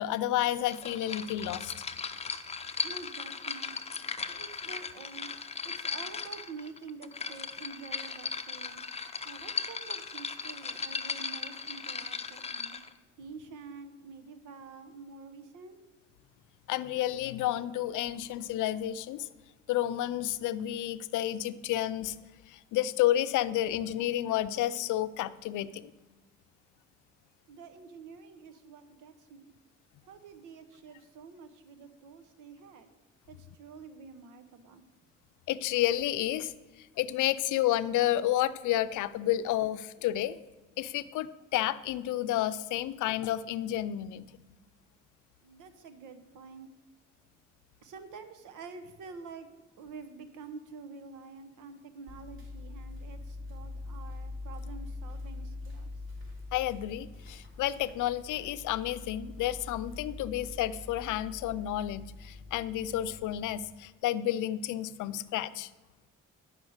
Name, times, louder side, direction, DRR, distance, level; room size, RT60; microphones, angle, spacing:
voice 1, 0.0-1.7 16.7-19.3 19.7-22.2 22.5-25.9 35.5-36.5 36.8-40.4 40.8-44.3 56.5-65.7, left 13 dB, 80° left, 14 dB, 0.5 m, -31 dB
sound 1, 0.7-12.9, left 5 dB, 20° left, 0.6 m, -37 dB
voice 2, 2.8-3.8 4.3-5.3 5.6-8.8 9.2-12.8 13.2-15.8 27.5-29.5 30.1-32.9 33.3-34.8 45.4-46.7 47.8-49.5 49.8-55.9, right 5 dB, 85° right, 9 dB, 1.0 m, -48 dB
sound 2, 52.1-63.7, left 2 dB, 45° right, 2.7 m, -44 dB
10.5 x 5.4 x 6.4 m, 1.2 s
cardioid pair, 90°, 30 cm